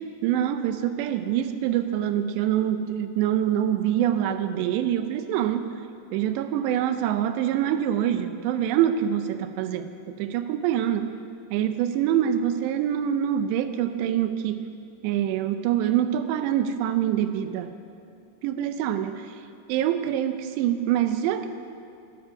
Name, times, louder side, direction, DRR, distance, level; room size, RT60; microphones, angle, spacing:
voice 1, 0.2-5.8 6.1-11.2 11.5-14.6 15.0-17.8 18.4-19.3 19.7-21.5, right 10 dB, 80° right, 9 dB, 2.6 m, -25 dB
13.0 x 12.5 x 8.9 m, 2.5 s
omnidirectional pair, 5.5 m